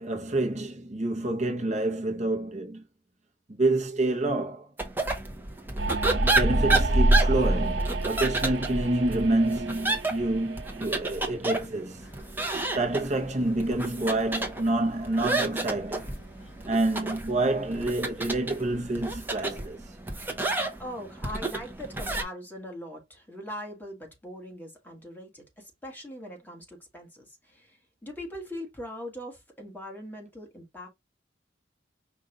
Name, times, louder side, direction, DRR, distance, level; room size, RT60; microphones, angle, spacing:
voice 1, 0.0-2.8 3.5-4.7 6.1-12.0 12.7-16.1 16.7-19.9, right 2 dB, 40° right, 0.9 m, -28 dB
sound 1, 4.8-22.2, right 2 dB, 10° right, 0.9 m, -31 dB
sound 2, 5.8-11.2, right 1 dB, 80° right, 1.0 m, -27 dB
sound 3, 12.0-19.7, equal, 75° left, 1.1 m, -50 dB
voice 2, 20.8-30.9, equal, 10° left, 1.6 m, -41 dB
5.2 x 2.5 x 3.8 m
head